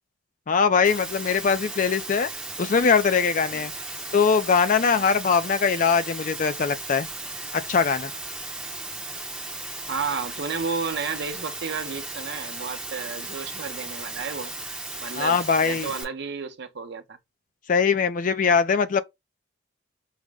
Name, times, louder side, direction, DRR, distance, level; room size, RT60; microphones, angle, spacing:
voice 1, 0.5-2.3 2.6-3.7 4.1-7.1 7.5-8.1 15.2-15.9 17.7-19.0, left 5 dB, 40° left, 0.4 m, -21 dB
Water, 0.8-16.0, right 2 dB, 5° right, 0.6 m, -36 dB
voice 2, 9.9-14.5 15.0-17.2, right 5 dB, 55° right, 0.7 m, -32 dB
4.8 x 2.1 x 3.4 m
head